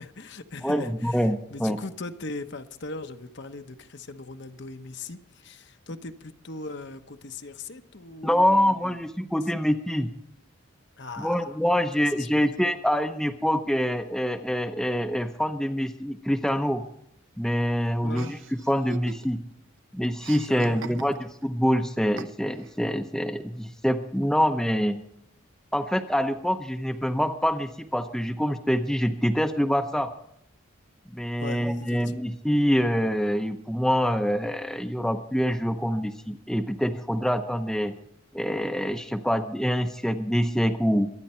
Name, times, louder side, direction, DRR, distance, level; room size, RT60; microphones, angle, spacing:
voice 1, 0.0-9.0 11.0-11.5 12.0-12.3 18.0-18.4 20.5-21.1 31.4-32.2, left 3 dB, 55° left, 8 dB, 1.0 m, -39 dB
voice 2, 0.6-1.8 8.2-10.1 11.2-16.8 17.4-18.4 18.7-19.4 19.9-25.0 25.7-30.1 31.1-37.9 38.3-41.1, equal, ahead, 6 dB, 0.7 m, -25 dB
Chuckle chortle, 18.1-19.5 19.8-21.4 22.2-22.7, right 5 dB, 65° right, 0.8 m, -42 dB
23.5 x 9.8 x 4.4 m, 0.75 s
head